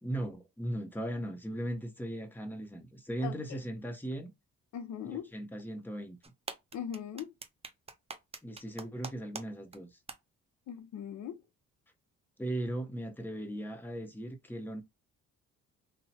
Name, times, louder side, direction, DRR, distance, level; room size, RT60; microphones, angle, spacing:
voice 1, 0.0-4.3 5.0-6.2 8.4-10.0 12.4-14.8, right 1 dB, 5° left, 0.9 m, -38 dB
voice 2, 3.2-3.6 4.7-5.3 6.7-7.3 10.7-11.4, left 8 dB, 65° left, 0.6 m, -40 dB
sound 1, 6.2-9.4 9.7-9.8 10.1-10.2, right 4 dB, 20° right, 0.6 m, -42 dB
2.8 x 2.2 x 4.1 m
cardioid pair, 90°, 30 cm